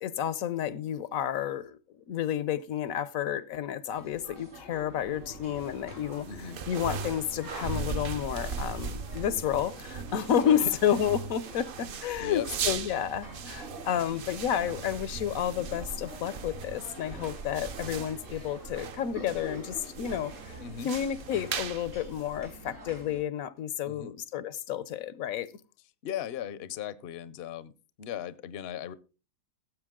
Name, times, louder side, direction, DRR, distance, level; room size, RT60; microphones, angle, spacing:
voice 1, 0.0-1.8 2.1-20.5 20.8-25.5, left 9 dB, 85° left, 1.2 m, -31 dB
sound 1, 3.9-23.2, equal, 70° right, 5.3 m, -47 dB
sound 2, 5.0-22.9, right 5 dB, 50° right, 0.7 m, -39 dB
voice 2, 6.3-6.6 10.4-10.7 11.8-12.5 20.6-20.9 23.9-24.1 26.0-27.7 28.0-28.9, left 9 dB, 60° left, 0.8 m, -37 dB
15.0 x 8.1 x 3.7 m
omnidirectional pair, 1.4 m